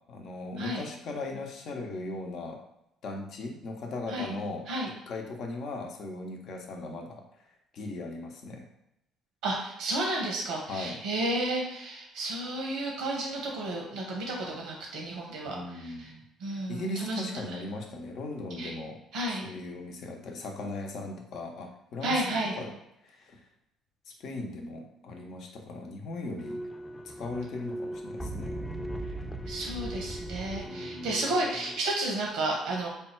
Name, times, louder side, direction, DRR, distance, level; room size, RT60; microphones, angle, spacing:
voice 1, 0.1-2.6 3.0-4.7 5.1-7.2 7.7-8.7 10.7-11.0 15.5-16.2 16.7-19.0 19.3-22.7 23.0-23.4 24.2-26.6 27.0-28.6 30.7-31.2, left 2 dB, 65° left, 2 dB, 0.7 m, -38 dB
voice 2, 9.4-16.1 16.4-17.2 18.6-18.7 19.1-19.5 22.0-22.6 29.5-32.9, right 1 dB, 90° right, -1 dB, 0.9 m, -32 dB
sound 1, 26.4-31.8, right 1 dB, 15° left, 0.5 m, -38 dB
3.4 x 2.3 x 4.4 m, 0.84 s
supercardioid pair, 70°, 0 cm